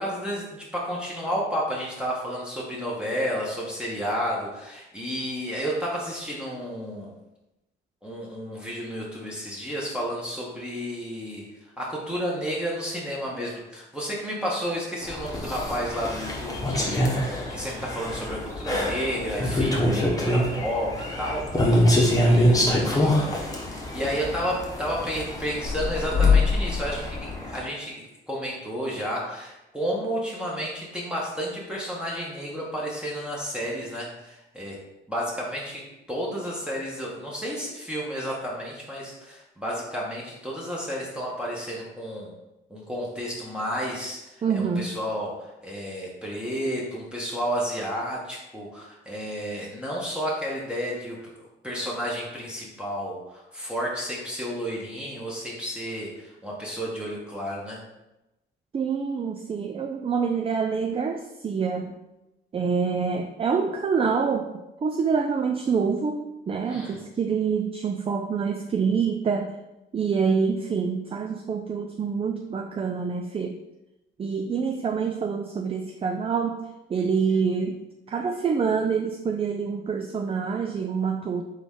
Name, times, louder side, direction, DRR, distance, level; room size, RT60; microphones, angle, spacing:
voice 1, 0.0-7.1 8.0-11.5 11.8-21.8 22.2-34.8 35.1-42.3 42.7-57.8 66.6-67.0, equal, 5° right, -4 dB, 1.1 m, -31 dB
sound 1, 15.0-27.6, left 1 dB, 15° left, 1.1 m, -24 dB
voice 2, 44.4-44.9 58.7-61.9 62.5-64.5 64.8-69.5 69.9-73.6 74.2-76.6 76.9-77.8 78.1-81.4, right 5 dB, 30° right, 5 dB, 0.4 m, -26 dB
4.0 x 3.6 x 3.6 m, 0.95 s
cardioid pair, 90°, 20 cm